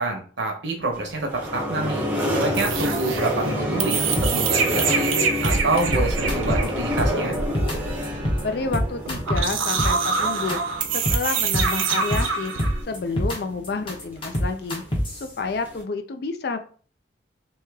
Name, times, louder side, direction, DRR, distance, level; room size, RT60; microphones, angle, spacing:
voice 1, 0.0-2.1 2.3-5.1 5.4-7.4, right 2 dB, 65° right, 3 dB, 0.9 m, -27 dB
sound 1, 0.9-15.8, left 1 dB, 10° right, 0.7 m, -30 dB
sound 2, 2.5-12.8, right 5 dB, 90° right, 0.5 m, -26 dB
sound 3, 4.2-4.5 4.9-5.0 5.2-5.6 5.9-6.7 7.0-7.7 8.0-8.4 8.7-10.2 10.5-10.6 10.8-11.2 11.5-12.3 12.6-13.4 13.6-15.2, equal, 25° left, 0.8 m, -24 dB
voice 2, 8.4-14.8 15.2-16.6, left 4 dB, 55° left, 8 dB, 0.4 m, -29 dB
3.0 x 2.8 x 3.5 m, 0.42 s
head